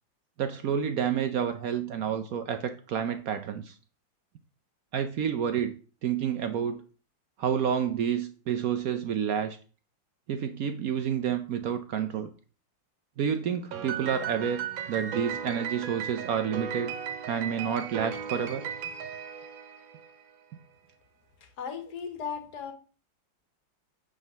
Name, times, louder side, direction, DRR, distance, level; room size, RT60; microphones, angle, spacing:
voice 1, 0.4-3.7 4.9-5.7 6.0-6.8 7.4-9.6 10.3-12.3 13.2-16.9 17.3-18.7, right 8 dB, 70° right, 9 dB, 0.8 m, -29 dB
Piano, 13.7-20.2, right 7 dB, 90° right, 1.7 m, -36 dB
voice 2, 21.4-22.7, left 6 dB, 60° left, 7 dB, 1.6 m, -37 dB
8.2 x 3.8 x 5.4 m, 0.39 s
omnidirectional pair, 2.0 m